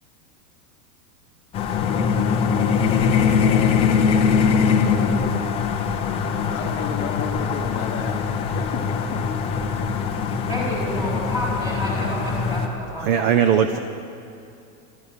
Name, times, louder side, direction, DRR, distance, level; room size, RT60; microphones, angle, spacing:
sound 1, 1.5-12.7, left 6 dB, 15° left, 0.4 m, -22 dB
voice 1, 6.5-8.8 9.1-9.2, left 8 dB, 30° left, 1 dB, 1.0 m, -32 dB
voice 2, 10.5-13.3 13.6-13.8, equal, 10° right, -5 dB, 4.3 m, -30 dB
voice 3, 13.0-13.8, right 8 dB, 35° right, 9 dB, 0.5 m, -19 dB
13.0 x 11.5 x 8.8 m, 2.7 s
supercardioid pair, 155°, 45 cm